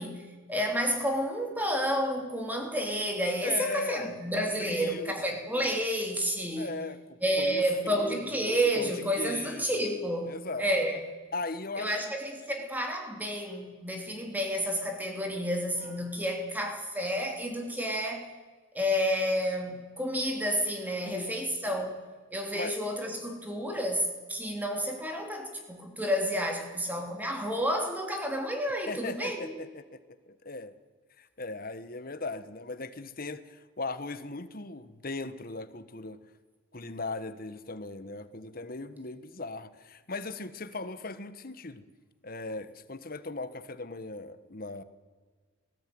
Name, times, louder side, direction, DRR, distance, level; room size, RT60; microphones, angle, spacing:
voice 1, 0.0-6.8 7.2-11.0 11.8-18.3 18.7-22.0 22.3-29.5, equal, 10° right, 2 dB, 2.9 m, -30 dB
voice 2, 3.4-4.2 4.6-5.2 6.6-9.7 10.2-10.7 11.3-12.1 21.0-21.3 22.5-22.8 28.9-30.0 30.3-30.7 31.2-36.2 36.7-41.8 42.2-44.8, left 3 dB, 45° left, 12 dB, 1.3 m, -38 dB
20.0 x 15.5 x 9.5 m, 1.4 s
head